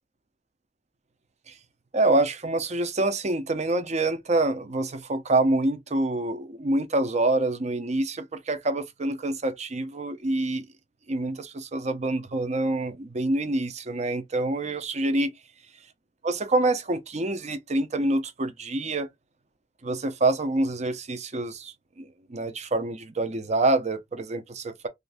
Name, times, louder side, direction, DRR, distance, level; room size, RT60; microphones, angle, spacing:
voice 1, 1.9-10.7 11.1-15.3 16.2-19.1 19.8-24.9, right 2 dB, 40° right, 0.7 m, -26 dB
3.3 x 2.6 x 3.4 m
head